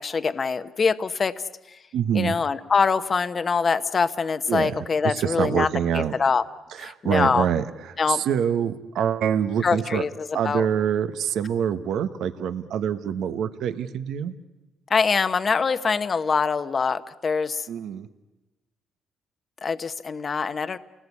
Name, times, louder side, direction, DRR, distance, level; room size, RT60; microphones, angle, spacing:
voice 1, 0.0-1.3 1.7-1.8 2.1-5.7 5.9-6.4 6.8-7.5 8.0-8.2 9.6-10.7 14.9-17.7 19.6-20.8, left 5 dB, 40° left, 12 dB, 1.0 m, -24 dB
voice 2, 1.9-2.4 4.5-4.8 5.0-6.1 6.7-10.0 10.3-14.3 17.7-18.1, right 8 dB, 75° right, 11 dB, 1.1 m, -25 dB
29.0 x 19.5 x 8.4 m, 1.1 s
cardioid pair, 90°, 0 cm